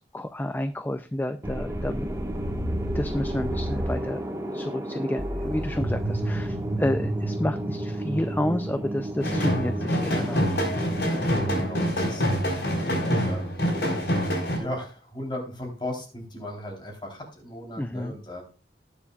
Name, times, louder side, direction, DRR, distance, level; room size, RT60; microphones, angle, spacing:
voice 1, 0.0-2.1 2.9-4.2 4.5-10.6 17.8-18.1, left 1 dB, 10° left, 10 dB, 0.4 m, -30 dB
sound 1, 1.4-11.9, right 1 dB, 15° right, 1.4 m, -31 dB
sound 2, 9.2-14.6, equal, 65° left, 4.7 m, -25 dB
voice 2, 11.1-14.0 14.6-18.4, left 1 dB, 25° left, 2 dB, 3.6 m, -37 dB
19.0 x 7.2 x 2.4 m, 0.34 s
head